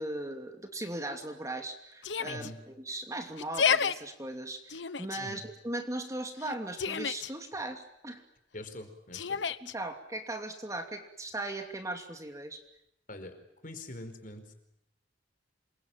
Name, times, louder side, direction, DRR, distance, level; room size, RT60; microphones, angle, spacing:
voice 1, 0.0-2.5 2.8-8.2 9.6-12.6, right 1 dB, 20° right, 5 dB, 2.8 m, -38 dB
Yell, 2.0-2.5 3.4-3.9 4.7-5.2 6.4-7.3 9.1-9.7, left 6 dB, 80° left, 1.1 m, -30 dB
voice 2, 2.3-2.6 5.2-5.4 8.5-9.4 13.1-13.4 13.6-14.5, left 1 dB, 50° left, 7 dB, 4.7 m, -44 dB
28.0 x 23.5 x 9.1 m, 0.79 s
head